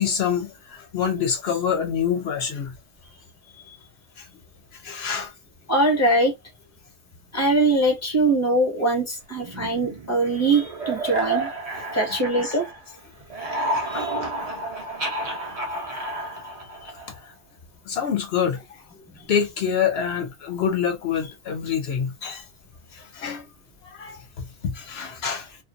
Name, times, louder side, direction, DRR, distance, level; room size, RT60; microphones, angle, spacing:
voice 1, 0.0-2.7 4.2-4.3 4.7-5.3 11.7-11.9 12.4-12.6 13.9-14.0 17.9-18.8 19.3-22.4 22.9-23.5 23.8-25.6, left 7 dB, 70° left, 0.9 m, -26 dB
voice 2, 5.7-6.3 7.3-11.5 11.9-12.7 13.9-14.1, right 2 dB, 15° left, 1.0 m, -22 dB
sound 1, 9.4-12.9 13.2-17.2, right 1 dB, 40° right, 0.8 m, -30 dB
2.5 x 2.4 x 2.4 m
omnidirectional pair, 1.1 m